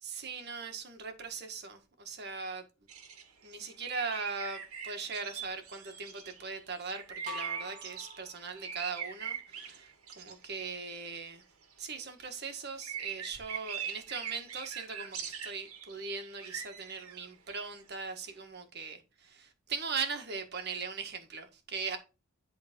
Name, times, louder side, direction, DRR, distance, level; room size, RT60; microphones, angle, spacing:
voice 1, 0.0-2.6 3.4-11.4 11.8-22.0, right 5 dB, 50° right, 1.6 m, -40 dB
sound 1, 2.9-8.2 8.6-10.6 10.9-12.1 12.7-17.9, right 7 dB, 85° right, 2.0 m, -42 dB
sound 2, 7.3-9.0, equal, 35° right, 1.6 m, -45 dB
11.0 x 3.9 x 5.2 m
head